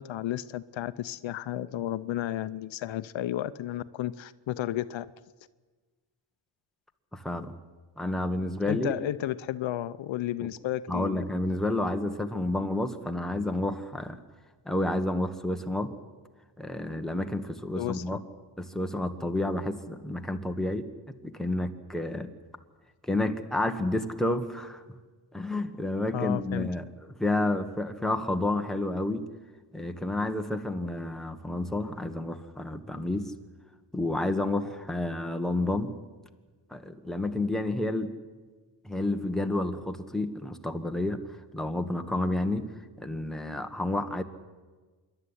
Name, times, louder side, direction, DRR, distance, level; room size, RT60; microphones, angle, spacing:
voice 1, 0.0-5.1 8.6-11.2 17.8-18.2 26.1-26.7, left 13 dB, 80° left, 15 dB, 0.7 m, -32 dB
voice 2, 7.1-7.5 8.0-8.9 10.9-14.2 14.6-15.9 16.6-18.2 18.6-22.3 23.0-24.8 25.3-26.9 27.2-29.2 29.7-33.3 33.9-35.9 36.7-38.1 38.8-42.7 43.0-44.2, left 1 dB, ahead, 5 dB, 1.4 m, -30 dB
26.0 x 11.5 x 9.9 m, 1.3 s
cardioid pair, 115°, 45 cm